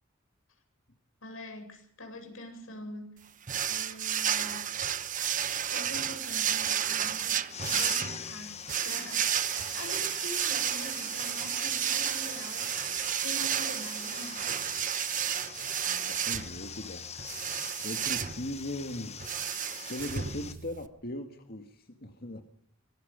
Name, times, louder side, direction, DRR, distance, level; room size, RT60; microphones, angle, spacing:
voice 1, 1.2-3.4 3.7-4.7 5.7-9.3 9.7-14.5, left 1 dB, 90° left, 4 dB, 7.8 m, -44 dB
sound 1, 3.5-20.9, right 9 dB, 40° right, 1.0 m, -32 dB
sound 2, 7.5-20.5, left 7 dB, 35° left, 1.4 m, -43 dB
voice 2, 15.9-17.1 17.8-19.2 19.9-22.4, left 1 dB, 50° left, 5 dB, 1.9 m, -39 dB
25.0 x 21.5 x 5.2 m, 0.67 s
head